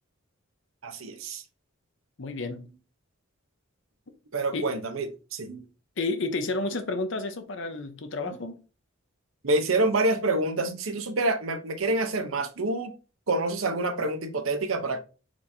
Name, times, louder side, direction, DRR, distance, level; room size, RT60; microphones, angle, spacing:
voice 1, 0.8-1.4 2.5-2.6 4.3-5.6 8.3-8.4 9.4-12.9 13.3-15.0, right 2 dB, 80° right, 0.7 m, -27 dB
voice 2, 2.2-2.7 4.5-4.7 6.0-8.6, left 3 dB, 65° left, 0.7 m, -31 dB
4.5 x 4.2 x 2.7 m
head